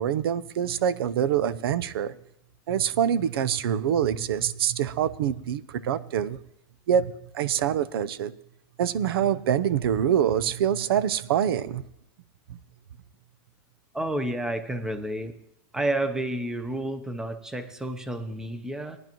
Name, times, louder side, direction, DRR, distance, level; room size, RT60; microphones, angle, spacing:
voice 1, 0.0-2.1 2.7-6.4 6.9-8.3 8.8-11.8, right 9 dB, 85° right, 17 dB, 0.7 m, -25 dB
voice 2, 13.9-15.3 15.7-19.0, right 1 dB, 5° right, 10 dB, 0.7 m, -30 dB
19.0 x 10.5 x 3.0 m, 0.75 s
supercardioid pair, 160°, 12 cm